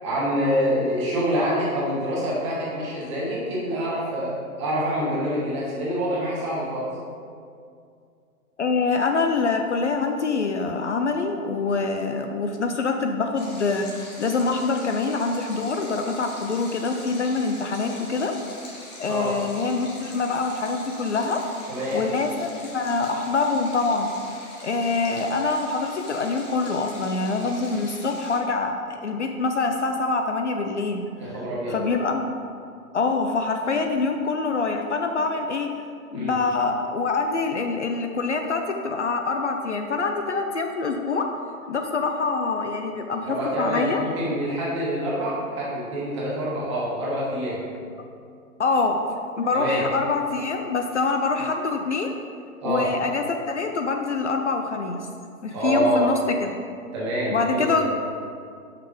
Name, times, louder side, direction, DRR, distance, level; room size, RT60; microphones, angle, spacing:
voice 1, 0.0-4.3 4.6-6.9 19.1-19.3 21.7-22.0 31.2-31.8 36.1-36.3 43.2-47.6 49.5-49.8 52.6-52.9 55.5-56.0 56.9-57.8, equal, 20° right, -6 dB, 1.3 m, -26 dB
voice 2, 8.6-18.3 19.0-21.4 21.9-24.1 24.6-31.1 31.7-32.2 32.9-35.7 36.1-41.3 41.7-44.0 48.6-49.0 49.4-52.1 52.6-55.1 55.4-56.6 57.3-58.0, left 4 dB, 55° left, 4 dB, 0.5 m, -25 dB
Stream, 13.4-28.4, left 1 dB, 30° left, 1.3 m, -43 dB
5.7 x 5.1 x 5.1 m, 2.3 s
hypercardioid pair, 165°, 44 cm